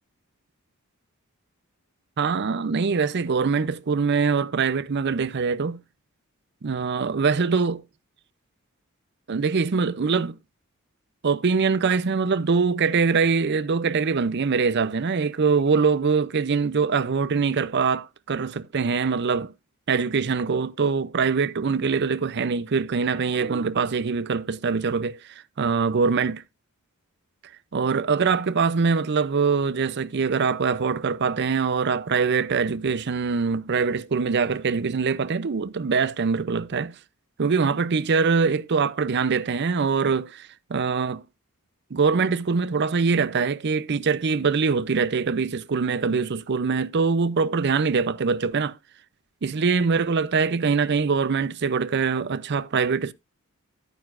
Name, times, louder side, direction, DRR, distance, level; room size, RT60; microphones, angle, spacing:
voice 1, 2.2-5.8 6.6-7.8 9.3-10.4 11.2-19.5 19.9-25.2 25.6-26.4 27.7-36.9 37.4-41.2 41.9-48.8 49.4-53.1, right 5 dB, 50° right, 0.5 m, -23 dB
11.5 x 9.1 x 2.5 m
head